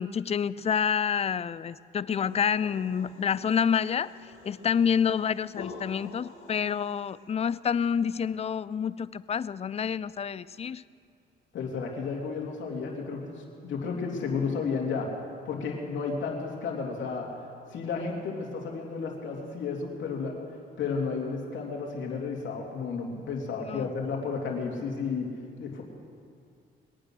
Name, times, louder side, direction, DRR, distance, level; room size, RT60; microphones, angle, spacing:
voice 1, 0.0-10.8 23.6-23.9, left 7 dB, 30° left, 18 dB, 0.4 m, -28 dB
sound 1, 2.2-7.2, left 5 dB, 90° left, 2.3 m, -48 dB
voice 2, 11.5-15.1 15.4-17.3 17.7-20.3 20.8-25.3 25.6-25.8, left 5 dB, 70° left, 0 dB, 2.9 m, -32 dB
22.0 x 9.0 x 6.3 m, 2.3 s
cardioid pair, 90°, 20 cm